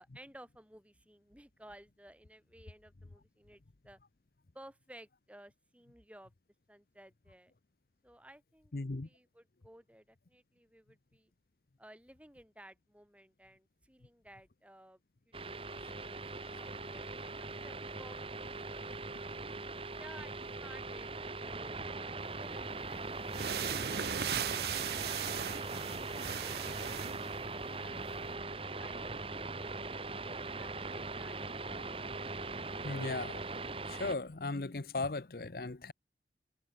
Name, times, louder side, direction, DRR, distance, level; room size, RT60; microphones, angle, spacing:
voice 1, 0.0-4.0 4.5-6.3 6.7-7.5 8.0-11.3 11.8-15.3 15.6-18.4 19.9-26.0, right 1 dB, 5° right, 3.8 m, -57 dB
voice 2, 8.7-9.1 15.8-15.9 27.8-28.0 32.8-33.4 33.9-35.9, left 3 dB, 55° left, 0.8 m, -37 dB
sound 1, 15.3-34.1, right 3 dB, 30° right, 2.1 m, -41 dB
sound 2, 22.6-22.7 23.2-27.4, right 8 dB, 65° right, 1.0 m, -37 dB
head